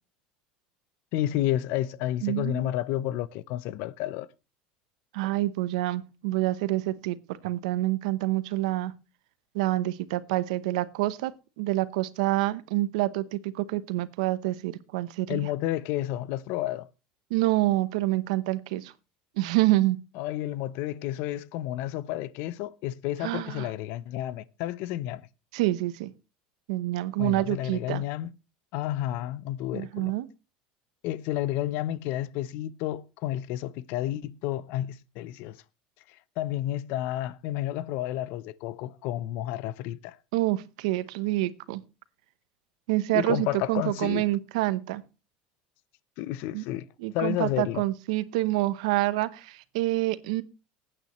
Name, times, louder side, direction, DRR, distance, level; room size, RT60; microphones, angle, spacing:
voice 1, 1.1-4.3 15.3-16.9 20.2-25.2 27.2-28.3 28.7-30.1 31.0-35.6 36.4-40.2 43.1-44.2 46.2-46.9 47.1-47.8, left 13 dB, 70° left, 0.7 m, -31 dB
voice 2, 2.2-2.7 5.1-8.9 9.5-11.3 11.6-15.4 17.3-18.9 19.4-20.0 23.2-23.7 25.5-26.1 26.7-28.0 29.7-30.3 40.3-41.8 42.9-45.0 46.5-46.6 47.0-50.4, right 17 dB, 90° right, 0.8 m, -27 dB
19.5 x 8.9 x 3.1 m
supercardioid pair, 120°, 3 cm